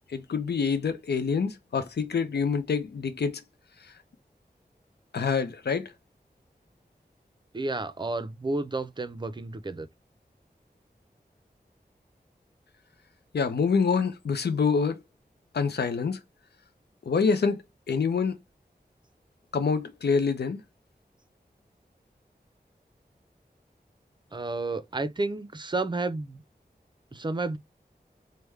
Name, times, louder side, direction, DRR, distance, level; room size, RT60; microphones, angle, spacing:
voice 1, 0.1-3.4 3.8-3.9 5.1-5.9 13.3-15.0 15.5-16.2 17.1-17.6 17.9-18.4 19.5-20.6, left 5 dB, 75° left, 0.5 m, -26 dB
voice 2, 7.5-9.9 24.3-26.4 27.1-27.6, right 2 dB, 25° right, 0.5 m, -31 dB
3.4 x 2.1 x 3.1 m
wide cardioid pair, 65°, 17 cm